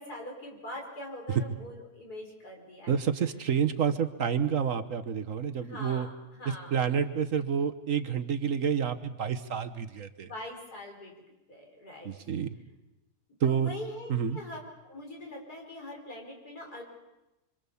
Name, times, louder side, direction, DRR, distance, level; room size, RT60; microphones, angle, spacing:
voice 1, 0.0-3.0 5.6-6.8 10.2-11.1 11.5-12.3 13.4-16.8, left 1 dB, 75° left, 0 dB, 5.8 m, -43 dB
voice 2, 2.9-6.1 6.7-10.3 12.0-12.5 13.4-13.7 14.1-14.4, right 7 dB, 60° right, 9 dB, 1.4 m, -29 dB
25.0 x 25.0 x 7.1 m, 0.99 s
omnidirectional pair, 1.7 m